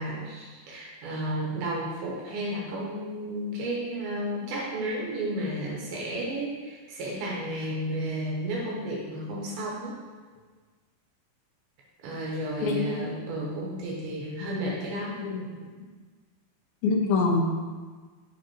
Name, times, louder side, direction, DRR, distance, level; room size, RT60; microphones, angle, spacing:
voice 1, 0.0-10.0 12.0-15.2, right 1 dB, 80° right, -4 dB, 2.9 m, -32 dB
voice 2, 12.6-13.1 15.2-15.7 16.8-17.4, left 4 dB, 80° left, 2 dB, 2.4 m, -26 dB
9.8 x 3.6 x 3.0 m, 1.4 s
omnidirectional pair, 4.4 m